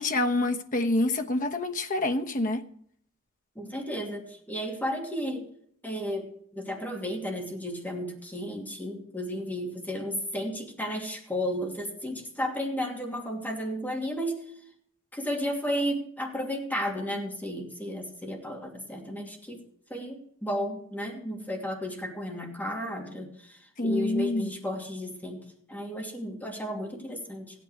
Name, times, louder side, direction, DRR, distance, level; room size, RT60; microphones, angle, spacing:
voice 1, 0.0-2.6 23.8-24.5, left 2 dB, 40° left, 1.1 m, -27 dB
voice 2, 3.5-5.5 5.8-14.5 15.1-19.6 19.9-27.6, equal, 10° left, 2.7 m, -33 dB
16.0 x 9.2 x 4.9 m
head